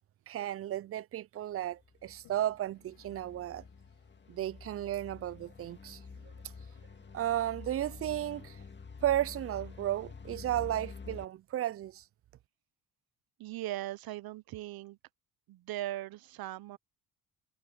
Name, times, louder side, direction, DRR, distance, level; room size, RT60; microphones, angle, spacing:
voice 1, 0.3-3.6 4.3-6.0 7.1-8.6 9.0-12.0, right 13 dB, 40° right, 0.4 m, -34 dB
sound 1, 1.6-11.3, left 5 dB, 30° left, 2.1 m, -48 dB
Toilet flush, 2.0-11.1, left 15 dB, 90° left, 5.4 m, -69 dB
voice 2, 13.4-15.0 15.5-16.8, right 14 dB, 65° right, 0.8 m, -39 dB
cardioid pair, 95°, 38 cm